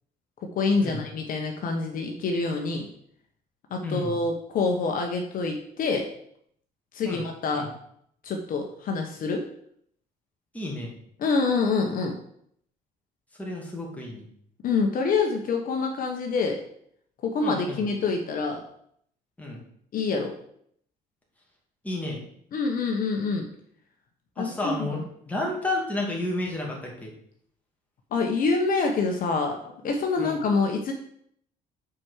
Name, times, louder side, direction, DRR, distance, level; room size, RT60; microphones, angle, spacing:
voice 1, 0.6-2.9 3.7-6.1 6.9-7.7 8.2-9.4 11.2-12.1 14.6-16.6 17.2-18.6 19.9-20.3 22.5-23.5 24.4-25.0 28.1-30.9, left 4 dB, 55° left, 2 dB, 1.1 m, -26 dB
voice 2, 3.8-4.2 7.0-7.2 7.5-7.7 10.5-10.9 13.4-14.3 17.4-17.9 19.4-19.6 21.8-22.2 24.4-27.1 30.2-30.4, left 2 dB, 10° left, -2 dB, 2.4 m, -31 dB
6.0 x 4.9 x 6.4 m, 0.67 s
cardioid pair, 110°, 17 cm